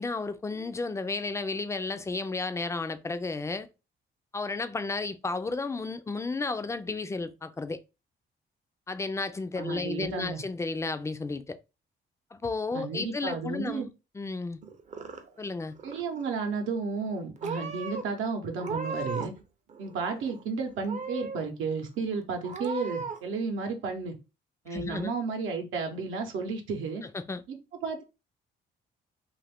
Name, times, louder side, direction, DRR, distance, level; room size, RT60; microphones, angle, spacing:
voice 1, 0.0-3.7 4.3-7.8 8.9-11.6 12.3-13.9 14.1-14.6 15.4-15.8 24.7-25.1 27.0-27.4, left 3 dB, 15° left, 0.3 m, -33 dB
voice 2, 9.5-10.4 12.7-13.9 15.8-19.3 19.8-24.2 24.7-27.0 27.5-28.0, right 4 dB, 80° right, 0.8 m, -33 dB
Purr / Meow, 14.6-15.5 15.8-16.3 17.0-17.2 17.4-18.0 18.5-19.4 19.7-20.4 20.8-21.4 21.9-22.0 22.4-23.2, right 4 dB, 40° right, 0.5 m, -36 dB
2.5 x 2.5 x 3.4 m
cardioid pair, 90°, 20 cm